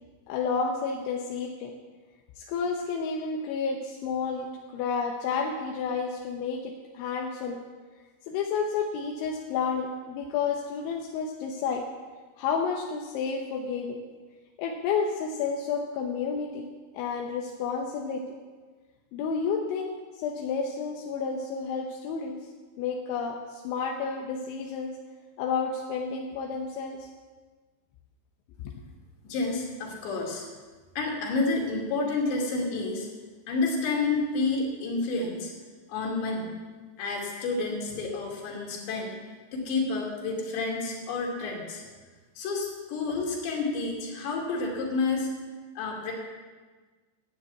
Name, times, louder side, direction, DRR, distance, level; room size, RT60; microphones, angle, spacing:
voice 1, 0.3-1.7 2.4-7.6 8.3-11.9 12.4-14.0 14.6-16.7 16.9-18.3 19.1-22.4 22.8-25.0 25.4-27.1, left 5 dB, 90° left, 0 dB, 3.4 m, -31 dB
voice 2, 29.2-30.5 31.0-33.1 33.5-35.5 35.9-36.5 37.0-39.2 39.5-41.8 42.4-45.3 45.8-46.1, left 3 dB, 70° left, -1 dB, 4.9 m, -29 dB
12.0 x 9.8 x 8.2 m, 1.4 s
omnidirectional pair, 5.2 m